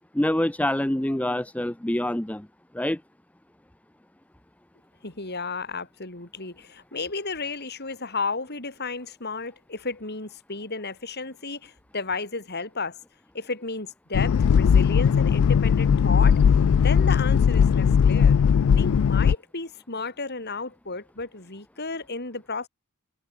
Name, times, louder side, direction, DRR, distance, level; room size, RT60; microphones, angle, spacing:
voice 1, 0.1-2.5 2.7-3.0, left 1 dB, 5° left, 0.6 m, -25 dB
voice 2, 5.0-13.0 13.3-16.4 16.8-18.4 18.7-22.7, left 4 dB, 50° left, 4.5 m, -33 dB
sound 1, 14.1-19.3, left 7 dB, 70° left, 0.3 m, -19 dB
head